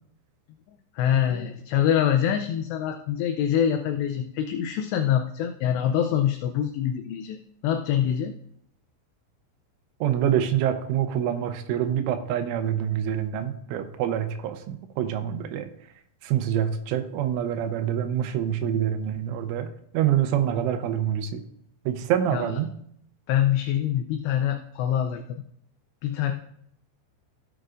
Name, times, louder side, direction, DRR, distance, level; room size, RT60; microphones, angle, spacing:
voice 1, 0.7-7.4 7.6-8.3 22.3-22.5 23.3-25.4 26.0-26.3, left 10 dB, 80° left, 6 dB, 2.5 m, -25 dB
voice 2, 10.0-15.7 16.2-21.4 21.9-22.7, right 10 dB, 85° right, 8 dB, 3.3 m, -26 dB
16.0 x 8.0 x 2.5 m, 0.71 s
omnidirectional pair, 5.4 m